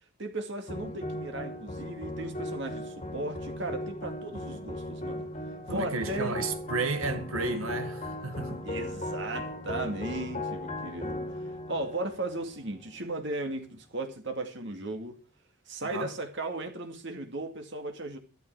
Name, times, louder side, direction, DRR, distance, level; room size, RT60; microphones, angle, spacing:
voice 1, 0.2-5.3 5.7-6.3 8.6-11.2 11.7-15.2 15.7-18.2, right 2 dB, 55° right, 2.3 m, -36 dB
sound 1, 0.7-13.2, left 1 dB, 35° left, 1.9 m, -37 dB
voice 2, 5.7-8.6 15.8-16.1, right 3 dB, 80° right, 2.0 m, -32 dB
13.0 x 13.0 x 4.7 m
head